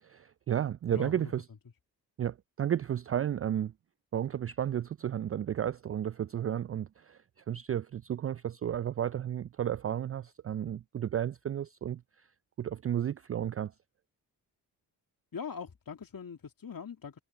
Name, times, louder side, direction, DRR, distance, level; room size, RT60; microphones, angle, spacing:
voice 1, 0.0-1.4 2.2-3.7 4.1-12.3 12.6-13.7, right 10 dB, 30° right, 0.4 m, -33 dB
voice 2, 0.9-1.3 15.3-17.2, left 6 dB, 40° left, 2.7 m, -41 dB
hypercardioid pair, 40°, 50 cm